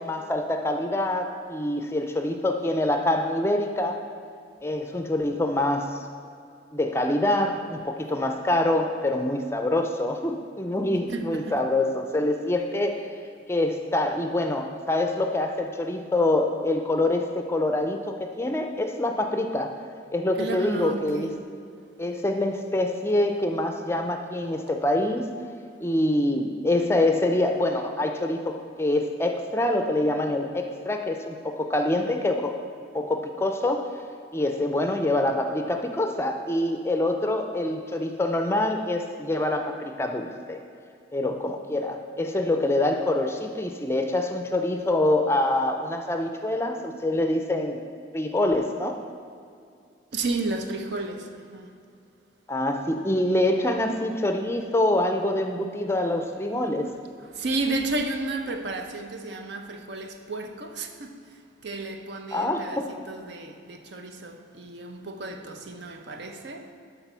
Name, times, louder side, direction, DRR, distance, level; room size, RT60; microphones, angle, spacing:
voice 1, 0.0-4.0 4.6-6.0 6.7-13.1 13.5-19.8 20.1-21.3 22.0-25.2 25.8-32.6 32.9-33.9 34.3-40.6 41.1-47.8 48.1-49.0 52.5-56.9 62.3-62.9, left 1 dB, 15° left, 5 dB, 0.4 m, -25 dB
voice 2, 11.1-11.7 20.3-21.5 50.1-51.7 56.8-56.9 57.2-66.7, right 2 dB, 70° right, 5 dB, 0.7 m, -32 dB
12.0 x 4.0 x 5.6 m, 2.4 s
head